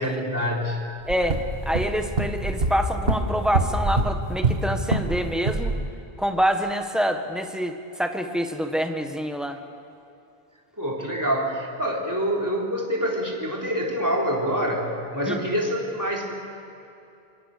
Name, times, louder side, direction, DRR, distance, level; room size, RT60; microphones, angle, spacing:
voice 1, 0.0-0.9 10.8-16.3, equal, 20° right, -2 dB, 3.8 m, -26 dB
voice 2, 1.1-5.7 6.2-9.6 15.3-15.4, equal, ahead, 5 dB, 1.6 m, -26 dB
sound 1, 1.1-5.2 5.5-5.8, right 2 dB, 70° right, 2.1 m, -25 dB
26.5 x 25.5 x 6.8 m, 2.7 s
omnidirectional pair, 1.0 m